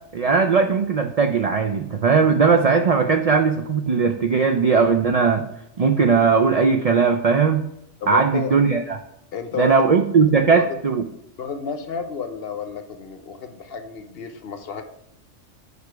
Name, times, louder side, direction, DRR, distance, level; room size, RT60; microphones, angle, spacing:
voice 1, 0.1-5.4 5.8-7.6 8.1-9.0 9.6-11.1, right 5 dB, 75° right, 5 dB, 0.3 m, -18 dB
voice 2, 8.0-8.5 9.3-9.7 10.5-10.6 11.4-14.8, left 6 dB, 60° left, 8 dB, 0.9 m, -31 dB
4.9 x 4.9 x 4.6 m, 0.81 s
omnidirectional pair, 1.3 m